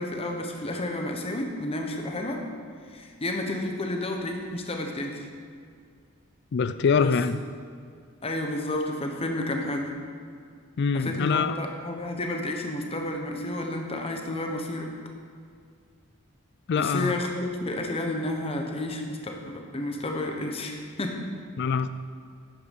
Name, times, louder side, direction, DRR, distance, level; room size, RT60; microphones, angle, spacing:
voice 1, 0.0-2.4 2.9-5.3 7.0-7.1 8.2-9.9 10.9-14.9 16.8-21.2, left 1 dB, 25° left, 2 dB, 1.2 m, -31 dB
voice 2, 6.5-7.4 10.8-11.6 16.7-17.2 21.6-21.9, left 5 dB, 50° left, 12 dB, 0.4 m, -24 dB
12.0 x 9.4 x 5.4 m, 2.2 s
head